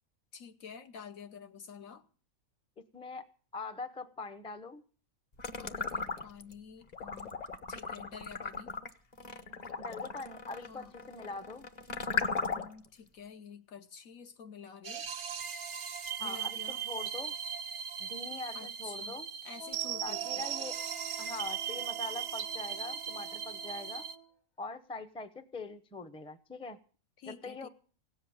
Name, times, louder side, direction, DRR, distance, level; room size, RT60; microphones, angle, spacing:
voice 1, 0.3-2.1 5.6-7.4 7.7-8.8 10.5-10.9 12.5-15.1 16.2-16.9 18.5-20.5 27.2-27.7, left 6 dB, 70° left, 1.5 m, -49 dB
voice 2, 2.9-3.3 3.5-4.8 9.8-11.7 16.2-17.3 18.0-19.3 20.0-20.7 21.2-24.1 24.6-26.8 27.3-27.7, left 3 dB, 5° left, 0.6 m, -43 dB
sound 1, 5.4-6.5 6.9-12.9, left 4 dB, 35° left, 1.0 m, -37 dB
sound 2, 14.8-24.2, right 9 dB, 90° right, 1.4 m, -38 dB
Wind instrument woodwind instrument, 19.5-24.3, right 3 dB, 55° left, 2.0 m, -50 dB
17.0 x 7.7 x 8.7 m
omnidirectional pair, 1.5 m